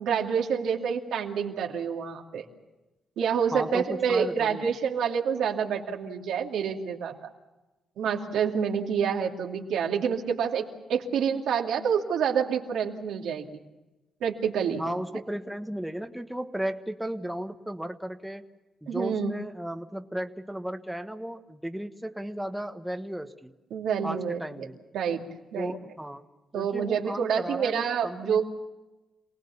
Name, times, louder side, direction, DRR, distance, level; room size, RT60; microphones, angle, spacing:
voice 1, 0.0-2.5 3.2-7.1 8.0-10.6 10.9-13.4 14.2-14.8 18.9-19.3 23.7-24.7 24.9-25.2 25.5-25.7 26.5-28.4, right 7 dB, 85° right, 1 dB, 2.5 m, -27 dB
voice 2, 3.5-4.7 14.8-18.5 18.8-23.5 24.0-24.8 25.5-26.2 26.5-28.4, right 1 dB, 5° right, 6 dB, 1.3 m, -35 dB
27.5 x 18.5 x 7.1 m, 1.1 s
cardioid pair, 80°, 0 cm